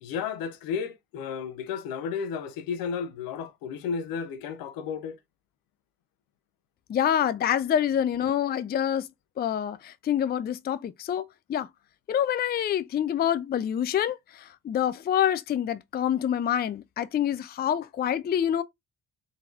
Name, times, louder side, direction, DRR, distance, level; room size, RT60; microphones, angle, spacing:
voice 1, 0.0-5.2, left 6 dB, 70° left, 0.7 m, -33 dB
voice 2, 6.9-9.1 9.4-11.2 11.5-11.7 12.1-18.6, left 9 dB, 30° left, 0.4 m, -26 dB
3.8 x 2.8 x 2.4 m
hypercardioid pair, 50°, 36 cm